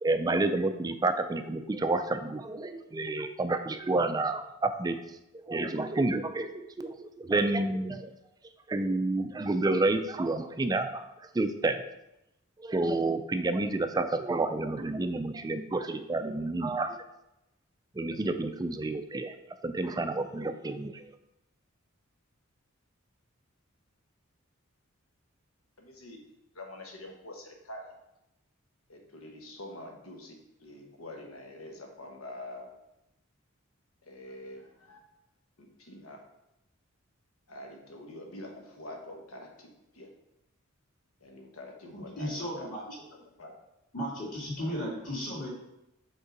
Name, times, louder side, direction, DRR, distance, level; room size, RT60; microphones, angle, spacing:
voice 1, 0.0-4.9 5.3-8.1 8.7-11.1 11.3-11.8 12.6-17.0 18.0-19.3 19.6-21.0, right 2 dB, 20° right, 8 dB, 0.4 m, -29 dB
voice 2, 25.8-26.2 26.5-27.8 28.9-32.7 34.0-35.0 35.6-36.2 37.5-40.1 41.2-42.8 43.1-43.5 44.6-44.8 45.4-45.5, left 1 dB, 85° left, 1 dB, 1.2 m, -46 dB
voice 3, 41.9-42.8 43.9-45.5, equal, 40° left, -4 dB, 2.2 m, -35 dB
5.3 x 3.8 x 5.1 m, 0.88 s
head